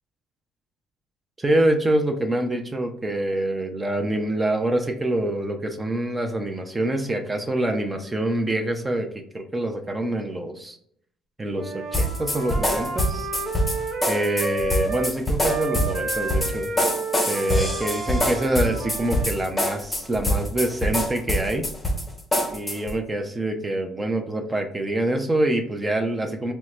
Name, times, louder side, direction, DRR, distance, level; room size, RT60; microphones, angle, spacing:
voice 1, 1.4-10.8 11.4-13.3 14.1-16.7 17.3-21.7 22.5-26.5, right 1 dB, 20° right, 5 dB, 0.6 m, -25 dB
Wind instrument woodwind instrument, 11.5-15.1 15.4-19.3, right 3 dB, 60° right, 0.7 m, -31 dB
sound 1, 11.9-23.0, left 1 dB, 15° left, 0.8 m, -25 dB
4.4 x 2.1 x 3.0 m, 0.65 s
supercardioid pair, 70°, 0 cm